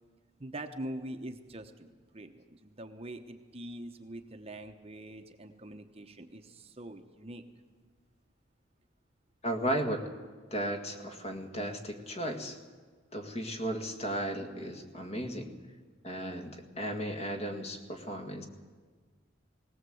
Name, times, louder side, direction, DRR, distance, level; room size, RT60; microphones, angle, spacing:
voice 1, 0.4-1.9 2.1-7.4, right 1 dB, 30° right, 6 dB, 1.0 m, -43 dB
voice 2, 9.4-10.0 10.5-12.6 13.1-15.5 16.0-18.4, equal, 35° left, 4 dB, 1.9 m, -35 dB
19.0 x 18.0 x 7.8 m, 1.4 s
head